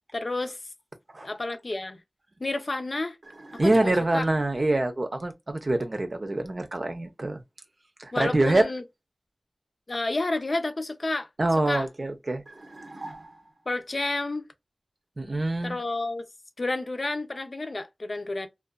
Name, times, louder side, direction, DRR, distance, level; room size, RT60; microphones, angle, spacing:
voice 1, 0.1-0.6 1.2-2.0 2.4-3.2 3.6-4.2 8.1-8.8 9.9-11.3 11.7-11.9 13.7-14.5 15.6-16.3 16.6-18.5, left 2 dB, 65° left, 0.5 m, -30 dB
sound 1, 3.2-4.4 12.5-13.8, right 2 dB, 90° right, 0.8 m, -44 dB
voice 2, 3.6-7.4 8.0-8.7 11.4-12.4 15.2-15.8, right 2 dB, 60° right, 0.6 m, -25 dB
2.6 x 2.3 x 2.2 m
wide cardioid pair, 50°, 0 cm